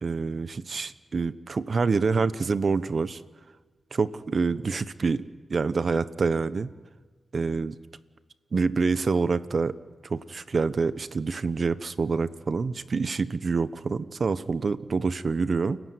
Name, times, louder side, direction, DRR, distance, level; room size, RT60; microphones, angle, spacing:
voice 1, 0.0-3.2 3.9-5.2 5.5-6.7 7.3-7.7 8.5-9.7 10.1-15.8, right 4 dB, 60° right, 14 dB, 1.0 m, -26 dB
29.5 x 15.5 x 9.6 m, 1.4 s
cardioid pair, 60°, 0 cm